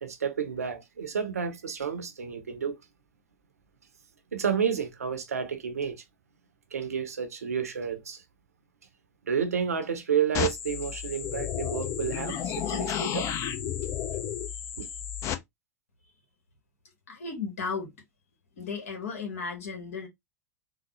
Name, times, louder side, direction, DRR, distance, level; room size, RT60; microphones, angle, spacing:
voice 1, 0.0-2.8 4.3-6.0 6.7-8.2 9.3-13.3 14.8-14.9, right 7 dB, 75° right, 0.7 m, -30 dB
sound 1, 10.3-15.3, left 10 dB, 35° left, 0.5 m, -32 dB
voice 2, 17.1-17.9 18.6-20.1, left 5 dB, 65° left, 1.3 m, -35 dB
3.9 x 2.1 x 2.9 m
figure-of-eight pair, 85°, 8 cm